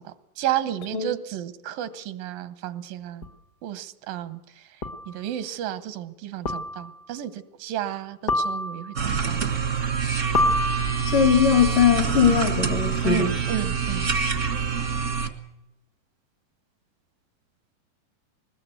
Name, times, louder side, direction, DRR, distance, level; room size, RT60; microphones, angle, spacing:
voice 1, 0.0-3.3 3.6-4.8 5.1-9.6 13.0-14.1, right 11 dB, 90° right, 13 dB, 2.8 m, -32 dB
sound 1, 3.2-3.3 4.8-5.2 6.4-7.0 8.3-9.0 10.3-11.3, left 2 dB, 55° left, 0.9 m, -27 dB
sound 2, 8.9-15.3, right 6 dB, 55° right, 0.8 m, -26 dB
voice 2, 11.0-13.3, left 8 dB, 75° left, 7 dB, 3.5 m, -20 dB
21.0 x 19.5 x 8.0 m, 0.92 s
omnidirectional pair, 3.9 m